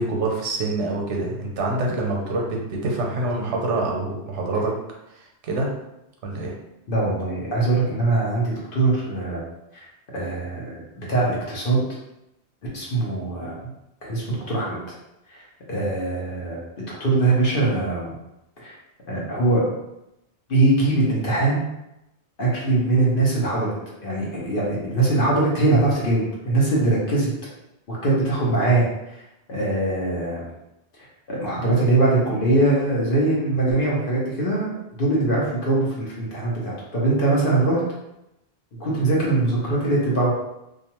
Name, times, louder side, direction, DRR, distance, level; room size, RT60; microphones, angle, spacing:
voice 1, 0.0-4.8 5.4-5.7 6.2-6.5, right 2 dB, 90° right, 0 dB, 1.0 m, -25 dB
voice 2, 6.9-9.4 9.7-9.8 10.1-11.8 12.7-13.6 14.0-14.8 15.3-16.6 17.0-18.1 18.6-18.8 19.1-19.6 20.5-21.6 22.4-23.7 24.0-27.3 27.9-28.9 29.5-30.4 31.0-34.7 35.0-37.8 38.8-40.3, right 2 dB, 55° left, -5 dB, 0.9 m, -22 dB
2.5 x 2.3 x 2.9 m, 0.89 s
omnidirectional pair, 1.2 m